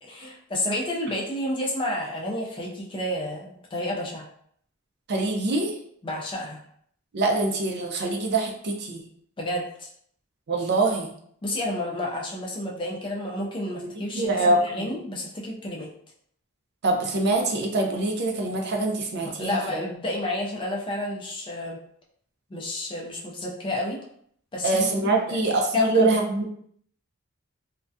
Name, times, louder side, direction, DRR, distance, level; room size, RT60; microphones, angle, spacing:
voice 1, 0.0-4.3 6.0-6.6 9.4-9.9 11.4-15.9 19.2-21.8 22.5-24.0 24.5-25.4 25.7-26.1, left 1 dB, 25° left, -2 dB, 0.4 m, -30 dB
voice 2, 5.1-5.8 7.1-9.0 10.5-11.1 14.1-14.9 16.8-19.6 24.6-26.5, right 2 dB, 50° right, 2 dB, 0.5 m, -24 dB
2.3 x 2.1 x 2.5 m, 0.66 s
head